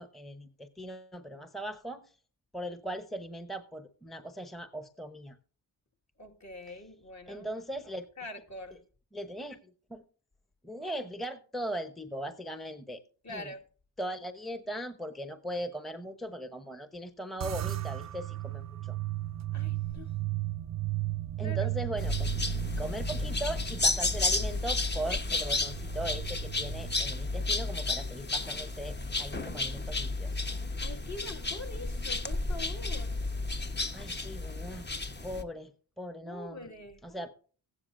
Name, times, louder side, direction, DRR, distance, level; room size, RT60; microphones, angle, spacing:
voice 1, 0.0-2.0 2.5-5.4 6.7-6.8 7.3-8.1 9.1-10.0 10.6-13.0 13.3-13.5 14.0-19.0 21.4-22.3 22.8-30.4 33.9-34.8 35.2-35.7 36.0-36.7 37.0-37.3, right 1 dB, ahead, 1.0 m, -39 dB
voice 2, 6.2-7.5 8.2-8.8 13.2-13.6 19.5-20.1 21.4-21.7 30.8-33.3 36.2-37.0, left 2 dB, 40° left, 2.2 m, -44 dB
sound 1, 17.4-28.0, right 16 dB, 40° right, 0.5 m, -36 dB
sound 2, 22.0-35.4, left 3 dB, 25° left, 1.1 m, -32 dB
15.0 x 9.8 x 2.6 m
supercardioid pair, 45°, 43 cm